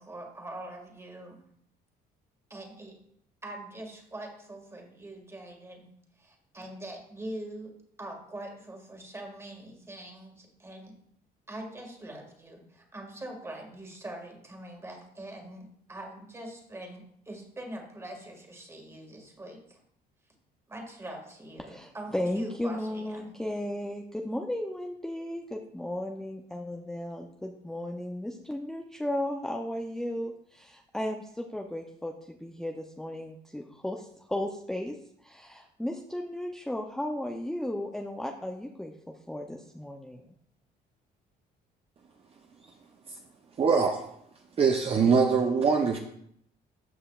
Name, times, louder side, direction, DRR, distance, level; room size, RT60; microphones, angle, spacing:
voice 1, 0.0-1.4 2.5-3.0 3.4-5.9 6.2-11.0 11.5-19.8 20.7-23.3, right 1 dB, 15° right, 2 dB, 1.8 m, -43 dB
voice 2, 21.7-35.0 35.2-38.9 39.3-40.3, left 1 dB, 5° left, 1 dB, 0.6 m, -35 dB
voice 3, 43.6-44.0 44.6-46.0, right 5 dB, 35° right, 3 dB, 0.7 m, -23 dB
13.5 x 5.5 x 2.4 m, 0.70 s
cardioid pair, 110°, 17 cm